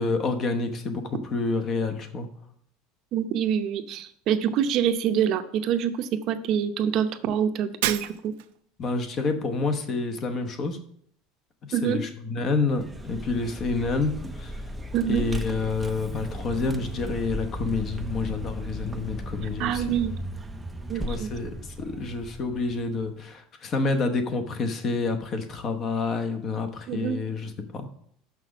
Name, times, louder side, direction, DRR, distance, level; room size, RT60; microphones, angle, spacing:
voice 1, 0.0-2.3 8.8-10.8 11.8-14.6 15.1-19.8 21.0-27.9, left 3 dB, 30° left, 7 dB, 1.0 m, -28 dB
voice 2, 3.1-8.3 11.7-12.0 14.9-15.3 19.6-20.1 20.9-21.3 26.9-27.2, right 8 dB, 45° right, 8 dB, 0.7 m, -26 dB
Shatter, 7.8-8.6, right 14 dB, 80° right, 0.5 m, -29 dB
Vehicle, 12.7-23.1, right 1 dB, 10° right, 0.5 m, -36 dB
6.3 x 6.0 x 5.9 m, 0.65 s
cardioid pair, 150°, 0 cm